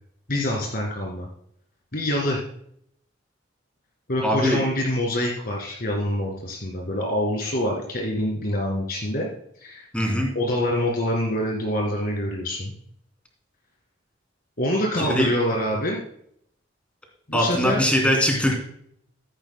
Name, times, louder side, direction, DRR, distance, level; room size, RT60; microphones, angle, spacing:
voice 1, 0.3-1.3 1.9-2.4 4.1-9.3 9.6-9.8 10.3-12.7 14.6-16.0 17.3-17.8, left 1 dB, 50° left, -1 dB, 2.1 m, -25 dB
voice 2, 4.2-4.6 9.9-10.3 15.0-15.3 17.3-18.5, equal, 5° left, 0 dB, 2.8 m, -21 dB
14.0 x 10.5 x 2.2 m, 0.68 s
head